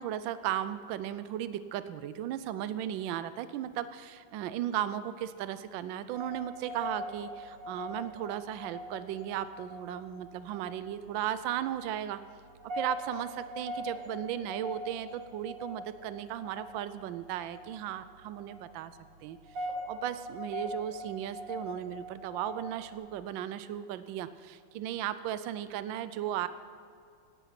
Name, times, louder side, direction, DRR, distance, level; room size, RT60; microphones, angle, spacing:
voice 1, 0.0-12.2 12.7-18.9 19.2-26.5, right 11 dB, 85° right, 13 dB, 1.3 m, -36 dB
sound 1, 6.1-22.9, equal, 65° right, 3.0 m, -42 dB
17.5 x 11.0 x 5.8 m, 2.4 s
omnidirectional pair, 2.1 m